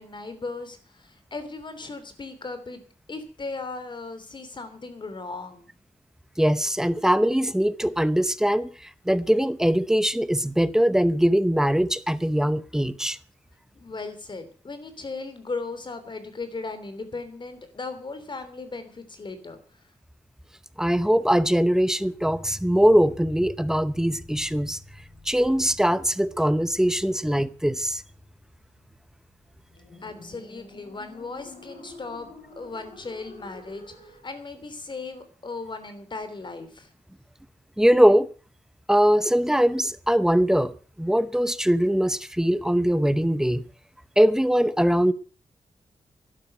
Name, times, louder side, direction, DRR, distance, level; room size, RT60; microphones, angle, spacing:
voice 1, 0.0-2.8 3.1-5.7 13.7-19.6 30.0-32.3 32.6-36.9, left 3 dB, 40° left, 3.3 m, -37 dB
voice 2, 6.4-8.7 9.1-13.2 20.8-24.8 25.3-28.0 37.8-38.3 38.9-40.7 41.0-43.6 44.2-45.1, equal, 5° right, 0.8 m, -21 dB
sound 1, 21.2-34.3, left 2 dB, 65° left, 7.5 m, -51 dB
12.0 x 11.5 x 7.9 m
wide cardioid pair, 120°, 13 cm